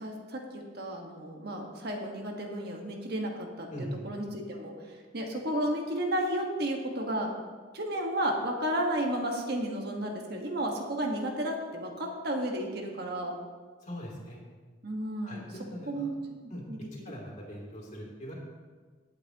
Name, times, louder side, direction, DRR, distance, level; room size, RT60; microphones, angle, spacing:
voice 1, 0.0-3.7 4.0-4.7 5.1-7.3 7.7-13.3 14.8-15.4 15.9-16.1 16.7-16.8, right 1 dB, 60° right, 1 dB, 1.6 m, -32 dB
voice 2, 3.7-4.0 13.8-14.4 15.2-16.1 16.5-16.7 17.0-18.3, equal, 45° left, -3 dB, 2.9 m, -41 dB
19.0 x 8.2 x 3.0 m, 1.5 s
head